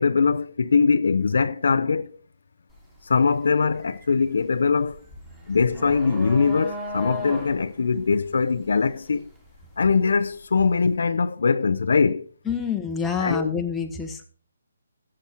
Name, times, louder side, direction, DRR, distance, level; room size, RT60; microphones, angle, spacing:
voice 1, 0.0-2.1 3.0-5.0 5.5-9.2 9.8-12.3 13.2-13.5, left 5 dB, 70° left, 0.6 m, -22 dB
sound 1, 2.7-3.0 3.3-10.3, equal, 15° right, 3.3 m, -36 dB
voice 2, 12.4-14.2, left 6 dB, 5° left, 1.3 m, -27 dB
13.5 x 7.9 x 4.3 m
hypercardioid pair, 150°, 0 cm